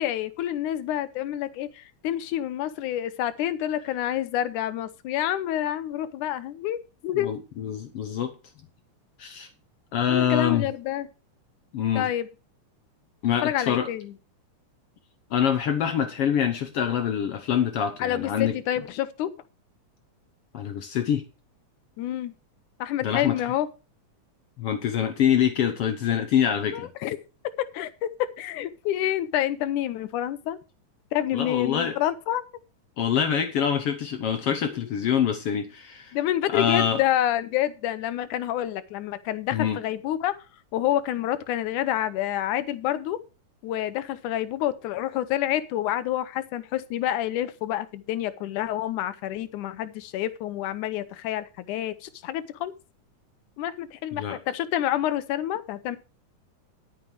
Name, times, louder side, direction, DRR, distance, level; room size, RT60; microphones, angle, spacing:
voice 1, 0.0-7.3 10.1-11.1 11.9-12.3 13.4-14.1 18.0-19.3 22.0-22.3 22.8-23.7 26.7-27.2 27.7-28.1 28.4-30.6 31.1-32.4 34.7-34.9 36.1-40.3 40.7-43.2 43.6-52.7 53.6-56.0, left 12 dB, 85° left, 2.3 m, -28 dB
voice 2, 7.1-8.3 9.2-9.5 9.9-10.7 11.7-12.1 13.2-13.9 15.3-18.5 20.5-21.2 23.0-23.4 24.6-26.9 31.3-32.0 33.0-36.1 36.5-37.0 39.5-39.8 54.1-54.4, left 9 dB, 65° left, 1.6 m, -25 dB
10.5 x 9.1 x 4.7 m
omnidirectional pair, 3.5 m